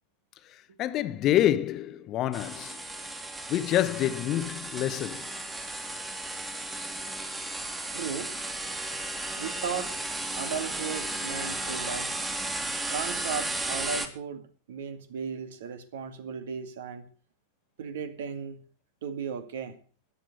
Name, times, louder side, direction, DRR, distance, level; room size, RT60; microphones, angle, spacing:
voice 1, 0.8-2.8 3.5-5.3, left 12 dB, 35° left, 1.0 m, -27 dB
sound 1, 2.3-14.1, right 2 dB, 10° right, 2.5 m, -34 dB
voice 2, 7.9-8.3 9.4-10.0 10.4-12.1 12.9-17.1 17.8-18.6 19.0-19.8, right 6 dB, 60° right, 2.2 m, -36 dB
14.0 x 10.5 x 7.9 m
figure-of-eight pair, 90°, 0 cm